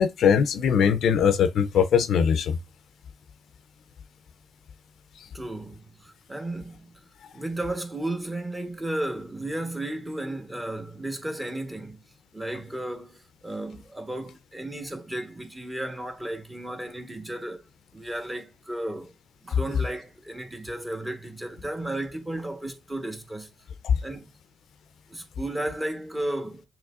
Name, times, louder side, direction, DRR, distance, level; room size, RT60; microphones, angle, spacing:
voice 1, 0.0-2.6 23.8-23.9, left 7 dB, 65° left, 0.5 m, -21 dB
voice 2, 5.3-6.9 7.3-12.0 12.3-17.6 17.9-19.1 19.4-23.5 24.0-24.3 25.1-26.6, right 1 dB, 15° right, 1.1 m, -34 dB
6.5 x 2.9 x 2.4 m
cardioid pair, 90°, 0 cm